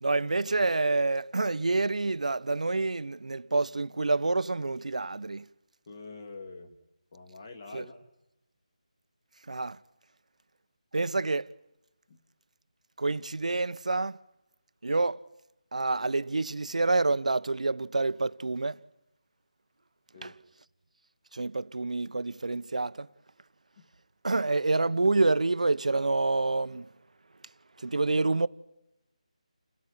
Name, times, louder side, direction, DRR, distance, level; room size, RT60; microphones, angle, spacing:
voice 1, 0.0-5.5 7.7-7.8 9.5-9.8 10.9-11.5 13.0-14.2 14.8-15.2 15.7-18.8 20.2-20.3 21.3-23.1 24.2-26.9 27.8-28.5, right 3 dB, 70° right, 1.0 m, -27 dB
voice 2, 5.9-6.8 7.1-8.0 12.1-12.2 20.1-20.4 23.8-23.9, left 3 dB, 25° left, 2.1 m, -45 dB
29.5 x 17.5 x 9.7 m
figure-of-eight pair, 180°, 4 cm